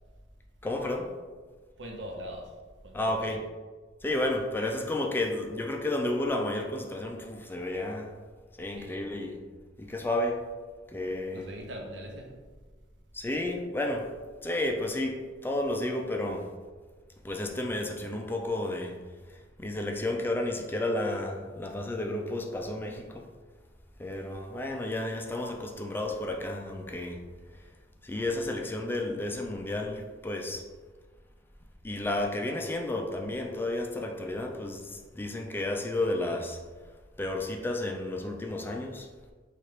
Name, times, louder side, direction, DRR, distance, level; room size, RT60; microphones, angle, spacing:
voice 1, 0.6-1.1 2.9-3.4 4.0-8.1 8.6-9.4 9.8-10.4 10.9-11.4 13.1-14.1 14.4-16.5 17.2-18.9 19.3-23.2 24.0-27.2 28.0-30.6 31.8-36.6 37.2-39.1, left 1 dB, 10° left, 2 dB, 0.3 m, -32 dB
voice 2, 1.8-3.4 8.7-9.0 11.3-12.4, equal, 85° right, 1 dB, 0.7 m, -42 dB
4.4 x 2.4 x 3.2 m, 1.4 s
head